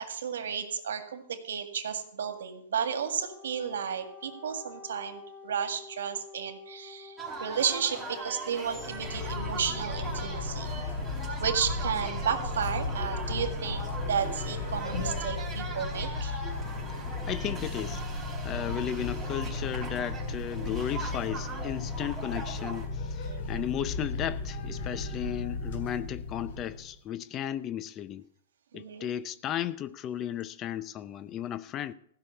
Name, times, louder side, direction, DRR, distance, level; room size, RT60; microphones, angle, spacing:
voice 1, 0.0-10.7 11.4-16.4 18.5-18.8 23.2-23.6 28.7-29.1, right 7 dB, 85° right, 1.9 m, -33 dB
Wind instrument woodwind instrument, 2.7-10.8, left 5 dB, 45° left, 3.7 m, -50 dB
sound 1, 7.2-22.9, right 2 dB, 5° right, 4.2 m, -40 dB
sound 2, 8.7-26.9, left 3 dB, 65° left, 3.2 m, -35 dB
voice 2, 17.3-28.3 28.7-31.9, left 11 dB, 25° left, 0.5 m, -35 dB
15.5 x 6.1 x 8.0 m
hypercardioid pair, 150°, 0 cm